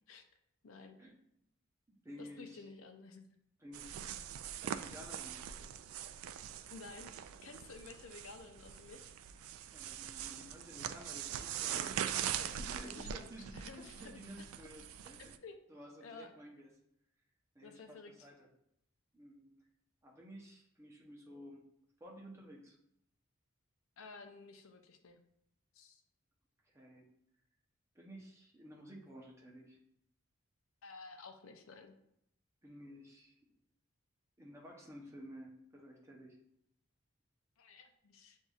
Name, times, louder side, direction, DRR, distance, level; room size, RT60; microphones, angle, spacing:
voice 1, 0.6-1.0 2.2-3.3 6.7-9.2 11.7-13.3 13.5-14.2 15.4-15.5 16.0-16.3 17.6-18.3 24.0-25.2 25.7-26.0 30.8-32.0 37.6-38.4, left 4 dB, 75° left, 6 dB, 0.5 m, -53 dB
voice 2, 2.0-2.7 3.6-4.0 4.3-5.4 9.7-12.1 12.6-13.7 13.9-15.3 15.7-16.7 17.5-18.5 19.1-19.5 20.0-21.6 22.0-22.8 26.6-27.0 27.9-29.8 32.6-33.4 34.4-36.4, equal, 15° right, -1 dB, 0.8 m, -53 dB
sound 1, 3.7-15.4, right 9 dB, 80° right, 0.3 m, -42 dB
7.8 x 2.7 x 2.4 m, 0.75 s
head